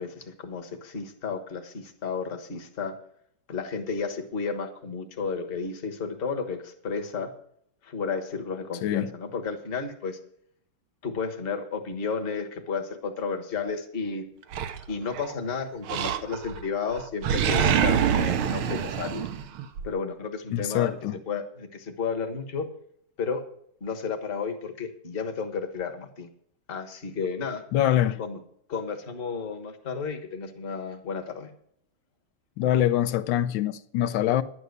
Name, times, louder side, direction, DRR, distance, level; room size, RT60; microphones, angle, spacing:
voice 1, 0.0-3.0 3.5-7.3 7.8-10.2 11.0-14.2 14.9-19.3 19.8-21.0 21.3-22.7 23.2-23.4 23.8-26.3 26.7-27.6 28.2-28.4 28.7-31.5, left 5 dB, 30° left, 1.3 m, -32 dB
Animal, 14.5-15.3 15.9-16.6 16.9-19.9, right 9 dB, 90° right, 1.7 m, -26 dB
voice 2, 20.5-21.1 27.7-28.2 32.6-34.4, left 12 dB, 70° left, 1.3 m, -24 dB
11.0 x 9.7 x 6.5 m
omnidirectional pair, 2.3 m